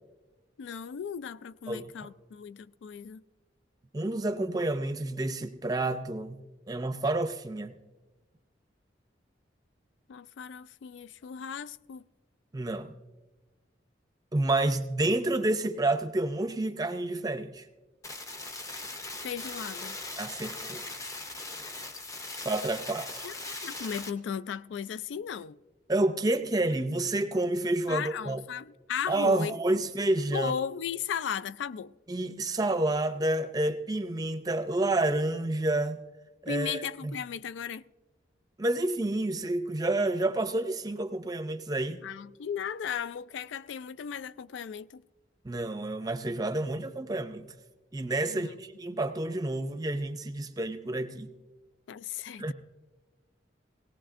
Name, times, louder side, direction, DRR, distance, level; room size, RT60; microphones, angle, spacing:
voice 1, 0.6-3.2 10.1-12.0 14.6-14.8 19.2-20.0 23.2-23.4 23.6-25.6 27.9-29.6 30.3-31.9 36.5-37.8 42.0-45.0 48.3-48.6 51.9-52.5, left 7 dB, 75° left, 0.3 m, -36 dB
voice 2, 3.9-6.4 6.7-7.7 12.5-12.9 14.3-17.7 20.2-20.8 22.4-23.3 25.9-28.4 29.1-30.5 32.1-36.0 36.4-37.1 38.6-42.0 45.4-47.5 47.9-51.3 52.4-52.5, right 2 dB, 20° right, 0.5 m, -29 dB
sound 1, 18.0-24.1, left 2 dB, 20° left, 0.7 m, -40 dB
18.0 x 18.0 x 2.5 m
head